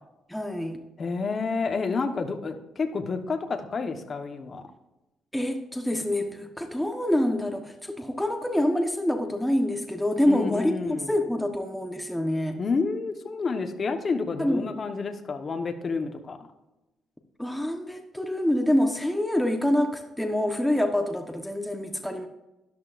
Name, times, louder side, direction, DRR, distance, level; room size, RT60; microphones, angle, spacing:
voice 1, 0.3-0.8 5.3-12.6 14.4-14.7 17.4-22.3, left 1 dB, 5° left, 5 dB, 1.1 m, -26 dB
voice 2, 1.0-4.7 10.3-11.1 12.6-16.4, left 4 dB, 40° left, 6 dB, 1.2 m, -29 dB
13.0 x 11.0 x 2.6 m, 0.99 s
cardioid pair, 90°, 0 cm